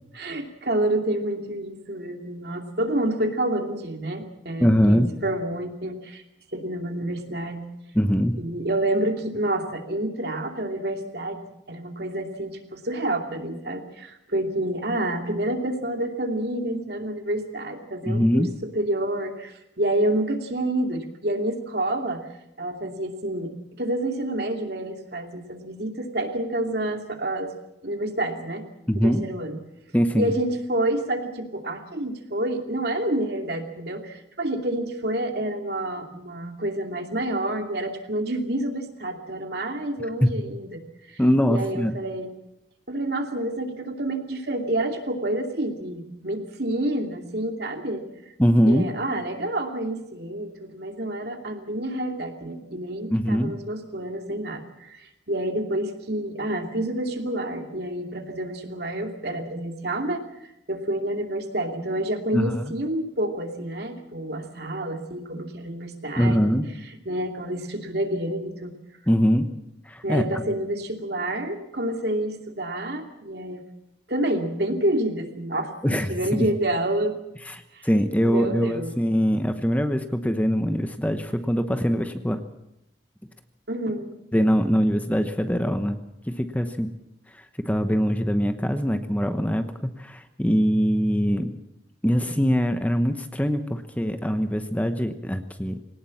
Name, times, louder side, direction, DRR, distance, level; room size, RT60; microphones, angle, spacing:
voice 1, 0.1-6.2 6.5-7.7 8.4-11.4 11.7-22.3 22.6-27.5 27.8-28.6 29.0-29.6 30.1-40.8 41.1-41.2 41.5-42.3 42.9-48.3 48.7-60.2 60.7-66.4 67.1-68.8 70.0-73.6 74.1-77.2 77.7-77.8 78.2-78.9 83.7-84.1, right 1 dB, 60° right, 4 dB, 2.7 m, -28 dB
voice 2, 4.6-5.1 7.9-8.4 18.1-18.5 28.9-29.2 29.9-30.3 40.2-40.3 41.2-42.0 48.4-48.9 53.1-53.5 62.3-62.6 66.2-66.7 69.1-69.5 69.9-70.2 75.8-76.5 77.5-82.4 84.3-86.0 86.3-86.9 87.7-91.5 92.0-95.8, equal, 10° left, 8 dB, 1.0 m, -22 dB
21.5 x 18.5 x 7.3 m, 0.85 s
head